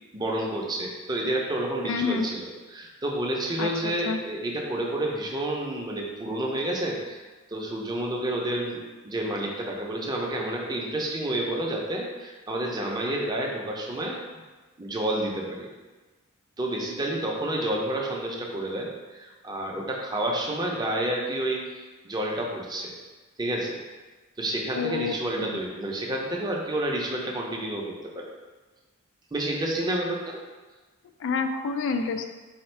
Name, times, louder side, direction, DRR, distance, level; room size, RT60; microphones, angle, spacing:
voice 1, 0.1-7.2 7.5-14.2 14.8-15.7 16.6-21.6 22.0-22.9 23.4-23.8 24.4-28.3 29.3-30.4, right 1 dB, 20° right, -1 dB, 0.5 m, -29 dB
voice 2, 1.9-2.3 3.6-4.2 24.8-25.6 31.2-32.3, left 4 dB, 60° left, 6 dB, 0.3 m, -28 dB
4.2 x 2.4 x 4.3 m, 1.3 s
head